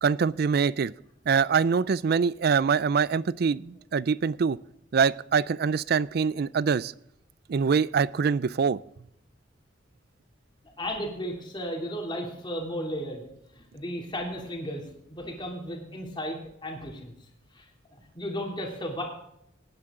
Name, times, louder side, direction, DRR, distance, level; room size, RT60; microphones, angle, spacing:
voice 1, 0.0-0.9 1.3-4.6 4.9-6.9 7.5-8.8, right 6 dB, 50° right, 21 dB, 0.4 m, -24 dB
voice 2, 10.8-13.2 13.5-17.1 17.5-17.7 18.1-19.0, equal, 25° left, 0 dB, 2.9 m, -34 dB
18.5 x 9.7 x 3.7 m, 0.78 s
head